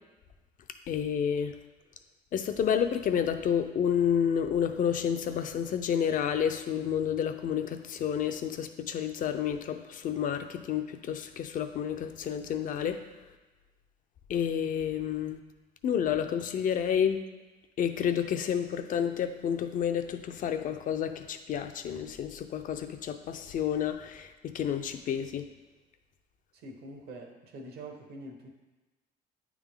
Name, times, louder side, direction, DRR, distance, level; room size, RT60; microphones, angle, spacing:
voice 1, 0.9-1.5 2.3-13.0 14.3-15.4 15.8-17.2 17.8-25.4, left 8 dB, 55° left, 8 dB, 0.5 m, -30 dB
voice 2, 26.5-28.5, right 1 dB, 70° right, 3 dB, 1.2 m, -45 dB
8.9 x 3.6 x 3.6 m, 1.2 s
cardioid pair, 110°, 17 cm